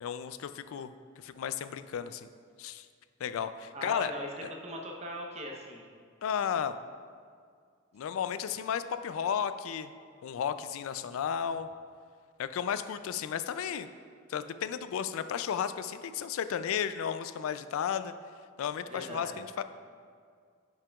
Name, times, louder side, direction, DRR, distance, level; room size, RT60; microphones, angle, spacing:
voice 1, 0.0-2.3 2.6-2.9 3.2-4.1 4.4-4.5 6.2-6.8 7.9-9.9 10.2-11.7 12.4-13.9 14.3-18.1 18.6-19.6, left 8 dB, 75° left, 11 dB, 0.3 m, -33 dB
voice 2, 3.7-4.3 4.6-5.9 18.9-19.4, equal, 30° right, 0 dB, 0.8 m, -40 dB
10.0 x 5.7 x 2.3 m, 2.1 s
head